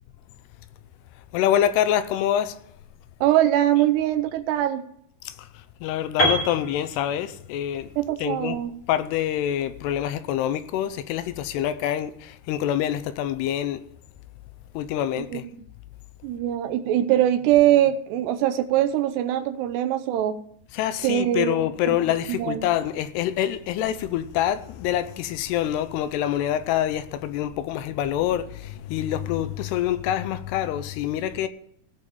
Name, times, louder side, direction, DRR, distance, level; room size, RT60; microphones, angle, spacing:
voice 1, 1.3-2.6 5.3-5.4 5.8-7.9 8.2-8.6 8.9-13.8 14.8-15.4 20.7-31.5, left 11 dB, 85° left, 2.7 m, -26 dB
voice 2, 3.2-4.8 8.0-8.7 15.2-15.4 16.2-20.4 21.0-22.0 22.3-22.7, right 12 dB, 85° right, 2.9 m, -22 dB
Piano, 6.2-10.1, equal, 35° left, 3.4 m, -29 dB
16.0 x 5.4 x 7.2 m
omnidirectional pair, 4.9 m